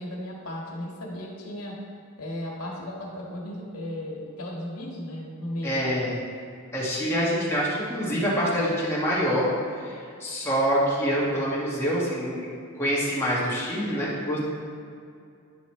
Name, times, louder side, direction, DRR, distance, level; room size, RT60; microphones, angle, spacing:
voice 1, 0.0-1.7 2.2-5.8, left 1 dB, 80° left, -3 dB, 1.7 m, -35 dB
voice 2, 5.6-6.2 6.7-9.5 9.8-9.9 10.2-12.4 12.7-14.4, equal, 10° left, -7 dB, 1.7 m, -25 dB
10.0 x 5.4 x 3.2 m, 2.4 s
head